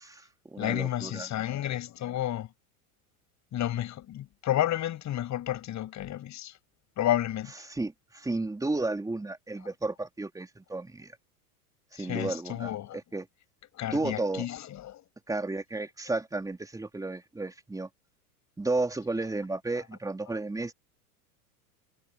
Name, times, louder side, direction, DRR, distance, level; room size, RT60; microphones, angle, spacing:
voice 1, 0.0-1.3 7.7-11.2 11.9-12.7 13.1-13.3 13.9-14.5 15.3-17.9 18.6-20.7, right 2 dB, 5° right, 3.8 m, -33 dB
voice 2, 0.6-2.5 3.5-6.6 7.0-7.5 12.0-13.0 13.7-15.0, left 12 dB, 35° left, 7.5 m, -31 dB
hypercardioid pair, 105°, 47 cm